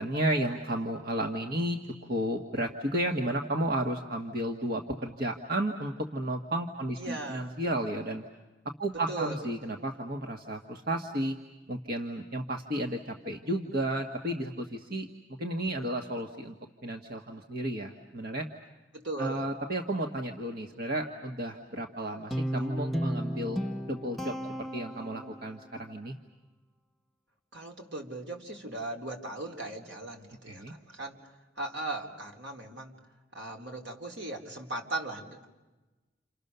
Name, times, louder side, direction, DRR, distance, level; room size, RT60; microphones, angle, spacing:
voice 1, 0.0-8.2 8.8-11.4 11.7-15.1 15.4-16.5 16.8-18.5 19.2-23.6 23.9-26.1 30.5-30.7, right 1 dB, 55° right, 3 dB, 1.5 m, -33 dB
voice 2, 7.0-7.6 9.1-9.4 9.6-9.7 18.9-19.5 27.5-31.2 31.6-32.9 33.3-35.5, right 2 dB, 80° right, 2 dB, 3.7 m, -38 dB
Guitar, 22.3-25.6, equal, ahead, 0.8 m, -34 dB
29.5 x 28.0 x 6.8 m, 1.1 s
head